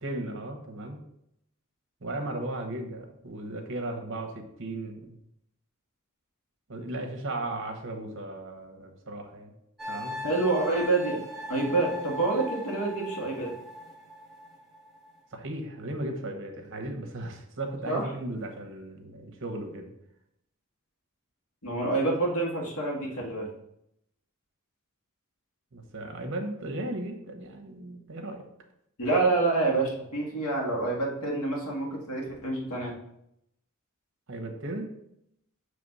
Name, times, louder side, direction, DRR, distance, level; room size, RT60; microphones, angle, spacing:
voice 1, 0.0-1.0 2.0-5.2 6.7-9.5 9.9-10.2 15.3-19.9 25.7-28.5 34.3-34.9, right 1 dB, 60° right, 4 dB, 1.0 m, -36 dB
sound 1, 9.8-15.2, equal, ahead, 1.0 m, -39 dB
voice 2, 10.2-11.2 11.5-13.5 17.9-18.0 21.6-23.5 29.0-33.0, right 3 dB, 80° left, -2 dB, 1.9 m, -27 dB
6.8 x 3.2 x 5.4 m, 0.78 s
head